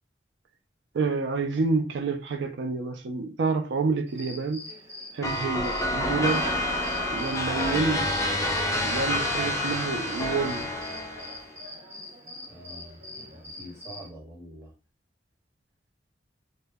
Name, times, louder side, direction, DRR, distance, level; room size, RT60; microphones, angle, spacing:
voice 1, 0.9-4.6 5.1-6.5 7.1-8.1 8.8-10.7, right 4 dB, 85° right, 0.4 m, -28 dB
Cricket, 4.1-14.1, equal, 45° right, 0.8 m, -40 dB
sound 1, 5.2-11.5, left 1 dB, 20° left, 0.4 m, -28 dB
voice 2, 12.5-14.7, equal, 15° right, 1.0 m, -46 dB
2.1 x 2.0 x 3.4 m
head